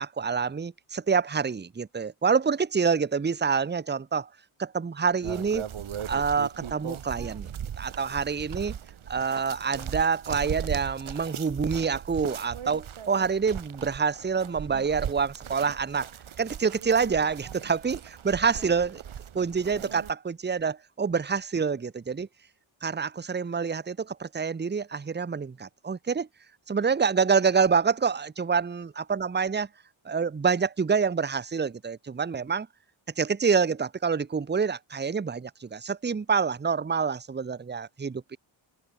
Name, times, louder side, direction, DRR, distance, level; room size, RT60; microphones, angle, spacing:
voice 1, 0.0-4.3 4.6-5.6 6.1-7.5 7.8-8.8 9.1-16.1 16.4-19.0 19.3-22.3 22.8-26.3 26.7-29.7 30.0-32.7 33.2-38.4, right 5 dB, 20° right, 0.9 m, -27 dB
sound 1, 5.2-20.1, right 9 dB, 70° right, 4.2 m, -38 dB
wide cardioid pair, 125°, 50 cm